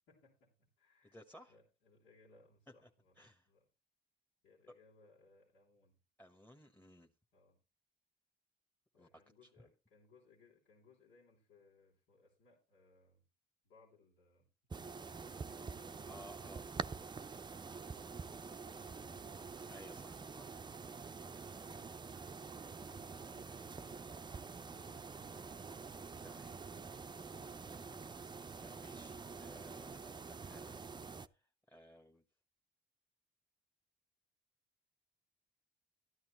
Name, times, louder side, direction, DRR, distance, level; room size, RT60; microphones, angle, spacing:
voice 1, 0.1-1.2 1.5-3.7 4.4-6.0 7.3-7.6 8.9-13.3 13.6-14.5 15.1-16.1 17.6-19.5 22.7-25.7 26.2-28.1, left 3 dB, 90° left, -5 dB, 3.1 m, -68 dB
voice 2, 1.0-1.6 2.8-2.9 3.2-3.5 4.7-4.8 6.2-7.1 8.9-9.1 9.4-9.5 16.0-16.7 19.7-20.5 26.2-26.6 28.6-30.8 31.3-32.2, equal, 10° left, 3 dB, 1.2 m, -58 dB
sound 1, 14.7-31.3, right 4 dB, 20° right, 0.5 m, -47 dB
13.0 x 11.0 x 3.0 m, 0.28 s
cardioid pair, 90°, 20 cm